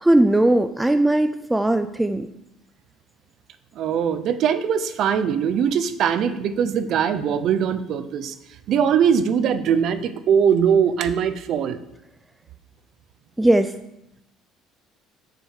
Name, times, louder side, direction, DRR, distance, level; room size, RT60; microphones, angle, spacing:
voice 1, 0.0-2.3 13.4-13.7, right 1 dB, 5° right, 9 dB, 0.3 m, -18 dB
voice 2, 3.8-8.3 8.7-11.8, right 7 dB, 45° right, 11 dB, 0.7 m, -21 dB
7.9 x 7.2 x 6.5 m, 0.84 s
cardioid pair, 180°, 0 cm